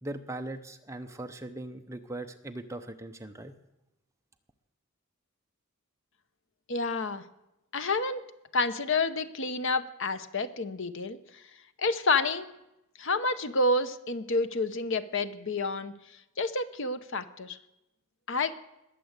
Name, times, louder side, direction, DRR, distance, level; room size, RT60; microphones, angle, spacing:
voice 1, 0.0-3.5, right 2 dB, 15° right, 6 dB, 0.8 m, -39 dB
voice 2, 6.7-7.2 7.7-8.2 8.5-11.4 11.8-12.5 13.0-15.9 16.4-17.6 18.3-18.5, left 3 dB, 55° left, 12 dB, 0.9 m, -29 dB
20.5 x 7.7 x 8.2 m, 0.91 s
head